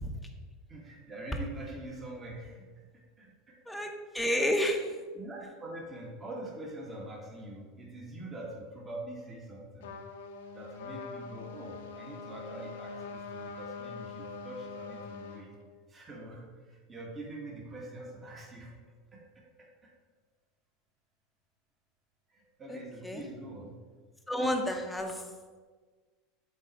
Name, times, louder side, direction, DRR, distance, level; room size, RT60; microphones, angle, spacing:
voice 1, 0.7-2.7 3.2-3.8 4.2-4.4 5.1-10.0 10.5-15.5 15.9-18.7 19.1-19.9 22.3-23.8, right 1 dB, 25° right, -2 dB, 1.8 m, -44 dB
voice 2, 3.7-4.9 22.7-22.8 23.0-23.2 24.3-25.2, equal, 5° left, 2 dB, 0.9 m, -30 dB
Trumpet, 9.8-15.4, left 4 dB, 70° left, 0.7 m, -43 dB
7.5 x 4.1 x 4.7 m, 1.5 s
hypercardioid pair, 85°, 0 cm